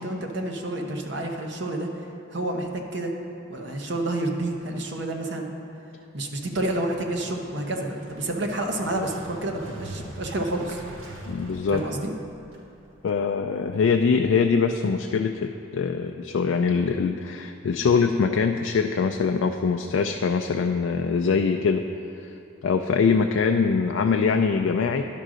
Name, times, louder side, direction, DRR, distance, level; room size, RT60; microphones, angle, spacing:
voice 1, 0.0-1.9 2.3-3.1 3.5-5.5 6.1-10.8 11.1-11.2 11.7-12.1, right 1 dB, 55° right, 2 dB, 0.8 m, -29 dB
Motorcycle, 6.4-13.2, right 1 dB, 80° right, 1.2 m, -42 dB
voice 2, 11.3-11.9 13.0-21.9 22.2-22.3 22.6-25.1, left 5 dB, 70° left, 5 dB, 0.3 m, -23 dB
11.0 x 3.8 x 6.2 m, 2.8 s
head